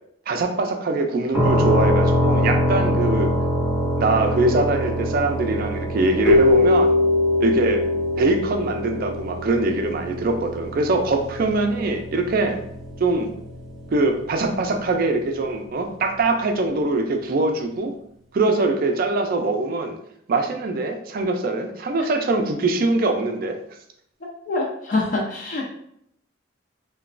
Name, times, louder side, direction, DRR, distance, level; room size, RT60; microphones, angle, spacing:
voice 1, 0.3-3.3 4.0-6.9 7.4-7.8 8.2-12.6 13.0-13.3 13.9-17.9 18.3-19.9 20.3-23.6, right 2 dB, 50° right, 5 dB, 0.4 m, -22 dB
sound 1, 1.3-15.0, equal, ahead, 0.6 m, -25 dB
Keyboard (musical), 6.3-9.5, left 2 dB, 75° left, 0.8 m, -20 dB
voice 2, 24.5-25.7, left 2 dB, 45° left, -2 dB, 0.4 m, -25 dB
2.9 x 2.2 x 2.4 m, 0.71 s
head